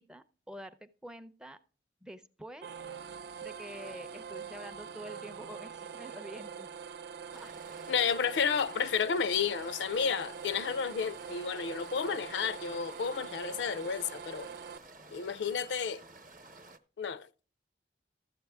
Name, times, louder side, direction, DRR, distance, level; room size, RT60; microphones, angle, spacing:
voice 1, 0.0-1.6 2.0-2.7 3.4-6.7 7.3-7.6, equal, 5° right, 0.4 m, -47 dB
sound 1, 2.6-14.8, right 6 dB, 65° right, 0.4 m, -44 dB
sound 2, 7.3-16.8, right 2 dB, 45° right, 0.8 m, -53 dB
voice 2, 7.9-14.5 15.1-16.0 17.0-17.5, left 6 dB, 80° left, 0.4 m, -31 dB
13.0 x 7.7 x 3.4 m
head